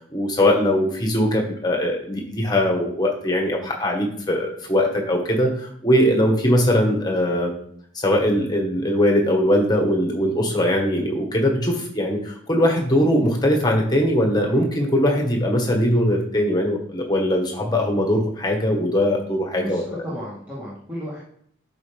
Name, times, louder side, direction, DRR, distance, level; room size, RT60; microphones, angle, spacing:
voice 1, 0.0-7.5 7.9-19.8, equal, 20° left, 1 dB, 1.5 m, -21 dB
voice 2, 19.6-21.2, equal, 10° right, -10 dB, 1.9 m, -33 dB
12.0 x 4.8 x 3.5 m, 0.63 s
head